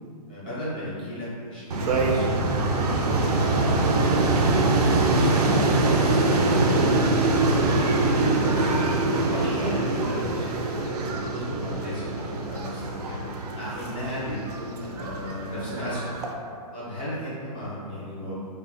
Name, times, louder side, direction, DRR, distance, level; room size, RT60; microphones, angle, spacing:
voice 1, 0.3-2.3 2.7-4.3 4.9-8.8 9.2-13.2 13.5-16.1 16.7-18.3, equal, 15° left, -11 dB, 0.4 m, -35 dB
sound 1, 1.7-16.3, right 2 dB, 80° right, 0.4 m, -24 dB
2.9 x 2.1 x 2.5 m, 2.3 s
hypercardioid pair, 180°, 20 cm